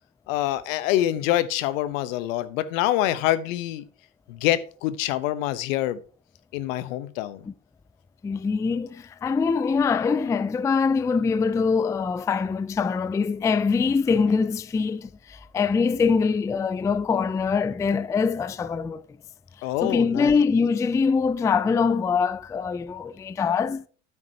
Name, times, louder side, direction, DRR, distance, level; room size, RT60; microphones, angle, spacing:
voice 1, 0.3-3.8 4.3-6.0 6.5-7.4 19.6-20.4, left 13 dB, 75° left, 0.9 m, -25 dB
voice 2, 8.2-19.0 19.8-23.8, left 5 dB, 10° left, 0.3 m, -23 dB
9.7 x 9.0 x 2.8 m
hypercardioid pair, 80°, 40 cm